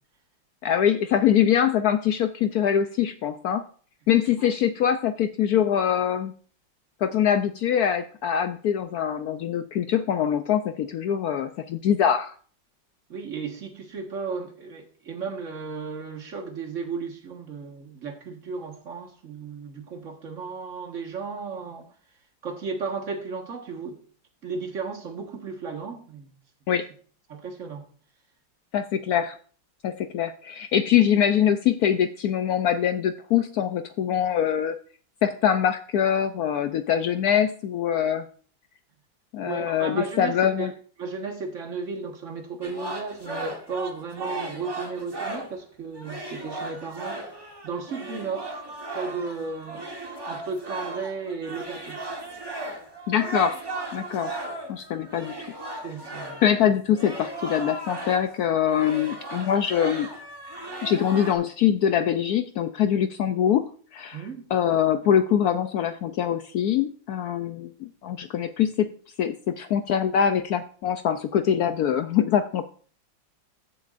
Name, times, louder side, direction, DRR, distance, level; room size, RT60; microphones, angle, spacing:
voice 1, 0.6-3.6 4.1-6.3 7.0-12.4 26.7-26.9 28.7-29.4 29.8-34.8 35.2-38.3 39.3-40.7 53.1-53.6 53.9-54.4 54.7-55.5 56.4-60.1 60.8-63.7 63.9-64.2 64.5-68.9 69.2-72.7, left 9 dB, 75° left, 0.8 m, -23 dB
voice 2, 13.1-21.9 22.4-24.0 24.4-26.3 27.3-27.8 39.4-40.7 41.0-47.3 47.6-48.5 48.9-49.8 50.3-52.0 55.8-56.4 64.1-64.5, right 4 dB, 45° right, 1.6 m, -34 dB
sound 1, 42.6-45.6 45.9-58.4 58.7-61.3, right 2 dB, 15° right, 0.9 m, -36 dB
15.0 x 6.9 x 2.5 m
omnidirectional pair, 2.1 m